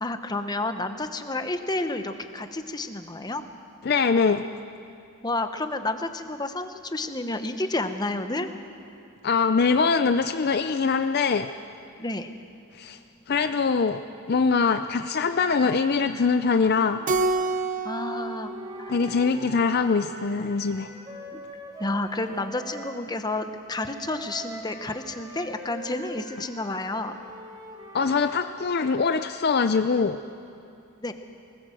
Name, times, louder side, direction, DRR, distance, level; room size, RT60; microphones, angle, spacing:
voice 1, 0.0-3.4 5.2-8.5 12.0-12.3 17.8-18.9 21.3-21.4 21.8-27.2 31.0-31.1, left 2 dB, 20° left, 8 dB, 0.9 m, -30 dB
voice 2, 3.8-4.4 9.2-11.5 12.7-13.0 13.3-14.0 14.3-17.0 18.9-20.9 27.9-30.2, left 5 dB, 45° left, 9 dB, 0.4 m, -23 dB
Wind instrument woodwind instrument, 16.6-23.0 23.7-29.8, right 2 dB, 20° right, 2.9 m, -44 dB
Keyboard (musical), 17.1-19.7, right 3 dB, 35° right, 0.7 m, -29 dB
20.5 x 19.0 x 7.7 m, 2.5 s
head